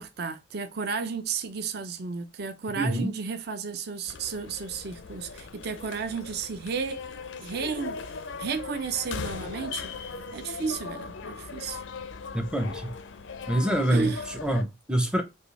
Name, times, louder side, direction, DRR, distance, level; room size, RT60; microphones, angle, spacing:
voice 1, 0.0-11.8 13.9-14.3, right 5 dB, 50° right, 0.5 m, -33 dB
voice 2, 2.8-3.1 12.3-12.9 13.5-14.1 14.4-15.2, right 1 dB, 5° right, 0.5 m, -25 dB
sound 1, 4.1-14.6, left 5 dB, 70° left, 0.5 m, -39 dB
5.3 x 2.3 x 3.1 m
head